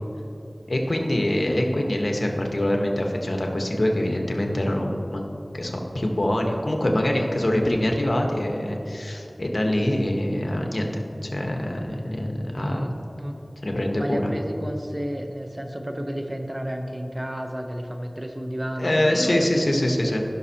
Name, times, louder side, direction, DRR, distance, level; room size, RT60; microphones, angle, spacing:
voice 1, 0.7-5.3 5.5-12.9 13.6-14.3 18.8-20.2, left 1 dB, 65° left, 1 dB, 1.1 m, -24 dB
voice 2, 12.5-12.9 13.2-13.4 13.9-20.2, equal, 30° right, 4 dB, 0.8 m, -32 dB
15.5 x 6.2 x 2.9 m, 2.7 s
wide cardioid pair, 45°, 0 cm